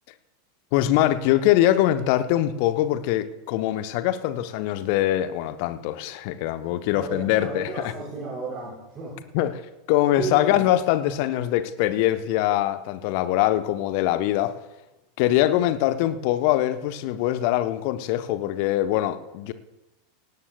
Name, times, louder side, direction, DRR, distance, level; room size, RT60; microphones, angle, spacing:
voice 1, 0.7-7.7 9.3-9.5 9.9-14.5 15.2-19.5, left 13 dB, 50° left, 11 dB, 0.8 m, -23 dB
voice 2, 6.9-9.3 10.1-10.7, right 3 dB, 30° right, -8 dB, 5.2 m, -33 dB
18.5 x 16.5 x 2.3 m, 0.99 s
figure-of-eight pair, 85°, 0 cm